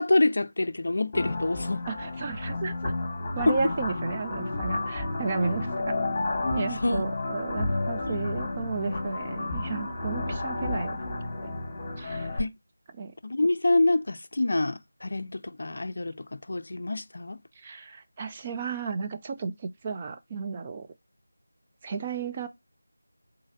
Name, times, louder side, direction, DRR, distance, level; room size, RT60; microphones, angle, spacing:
voice 1, 0.0-1.8 3.5-3.6 6.8-7.0 8.1-8.2 12.4-12.5 13.2-17.4, left 2 dB, 55° left, 0.4 m, -26 dB
sound 1, 1.1-12.4, left 2 dB, 20° left, 1.9 m, -31 dB
voice 2, 1.9-2.9 3.3-5.9 6.5-11.0 11.4-11.5 12.0-12.4 12.9-13.1 17.6-20.9 21.8-22.5, right 5 dB, 20° right, 0.4 m, -33 dB
4.0 x 3.9 x 2.6 m
figure-of-eight pair, 170°, 0 cm